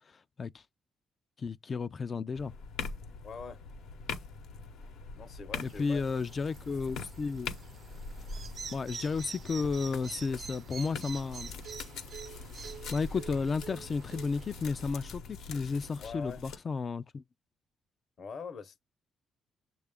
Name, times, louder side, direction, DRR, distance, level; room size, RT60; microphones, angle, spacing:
voice 1, 0.1-0.6 1.4-2.5 5.6-7.5 8.7-11.5 12.9-17.2, left 4 dB, 40° left, 0.3 m, -33 dB
sound 1, 2.3-16.6, left 4 dB, 85° left, 0.8 m, -43 dB
voice 2, 3.2-3.6 5.2-6.0 16.0-16.4 18.2-18.8, left 5 dB, 55° left, 0.8 m, -43 dB
sound 2, 5.6-14.9, right 5 dB, 50° right, 0.5 m, -48 dB
sound 3, 9.5-15.1, right 9 dB, 85° right, 0.8 m, -52 dB
6.5 x 2.4 x 3.5 m
cardioid pair, 90°, 0 cm